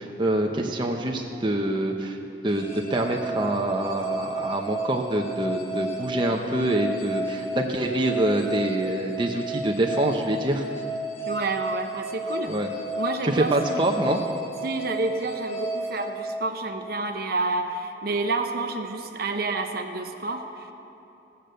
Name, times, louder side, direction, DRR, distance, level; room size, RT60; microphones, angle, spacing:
voice 1, 0.0-2.2 2.4-10.6 12.5-12.7 13.2-14.2, right 1 dB, 25° right, 1 dB, 0.7 m, -25 dB
sound 1, 2.5-16.9, equal, 30° left, 1.7 m, -33 dB
voice 2, 11.2-12.5 13.0-13.8 14.6-20.7, right 3 dB, 55° right, 5 dB, 0.8 m, -29 dB
16.0 x 6.7 x 7.6 m, 2.8 s
head